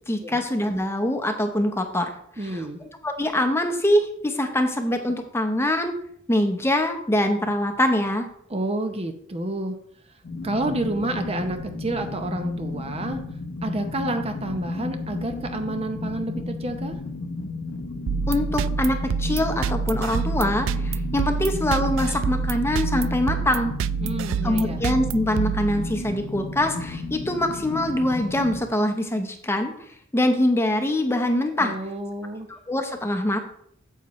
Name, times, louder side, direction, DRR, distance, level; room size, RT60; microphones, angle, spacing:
voice 1, 0.1-2.1 2.4-2.7 3.0-5.9 6.3-8.3 18.3-23.7 24.4-29.7 30.1-31.7 32.5-33.5, left 1 dB, 15° left, 6 dB, 0.8 m, -24 dB
voice 2, 2.4-2.8 8.5-9.8 10.4-13.2 13.6-17.0 24.0-24.8 31.6-32.5, right 1 dB, 30° right, 6 dB, 0.7 m, -29 dB
sound 1, 10.2-28.6, left 2 dB, 80° left, 0.7 m, -33 dB
sound 2, 18.1-26.2, right 6 dB, 75° right, 0.3 m, -27 dB
9.2 x 7.4 x 3.1 m, 0.67 s
head